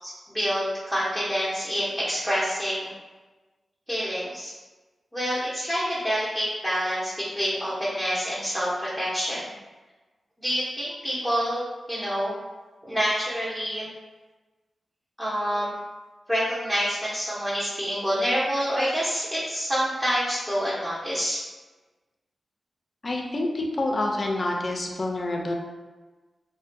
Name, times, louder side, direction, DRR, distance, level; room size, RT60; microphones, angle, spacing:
voice 1, 0.0-2.9 3.9-4.5 5.1-9.4 10.4-12.3 12.8-13.9 15.2-15.8 16.3-21.4, equal, 5° right, -10 dB, 0.7 m, -27 dB
voice 2, 23.0-25.5, left 2 dB, 50° left, 1 dB, 0.4 m, -27 dB
2.4 x 2.1 x 2.6 m, 1.2 s
cardioid pair, 65°, 0 cm